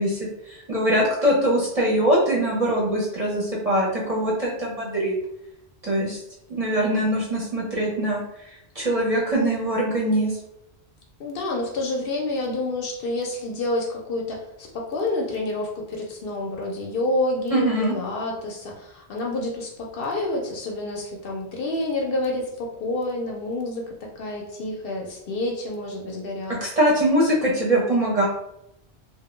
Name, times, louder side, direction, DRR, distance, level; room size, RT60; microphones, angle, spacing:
voice 1, 0.0-5.2 5.8-6.2 6.5-8.2 8.7-10.4 17.5-17.9 26.5-28.3, right 1 dB, 40° right, -5 dB, 0.6 m, -22 dB
voice 2, 11.2-26.6, left 2 dB, 65° left, 0 dB, 0.7 m, -28 dB
2.4 x 2.1 x 3.1 m, 0.80 s
omnidirectional pair, 1.1 m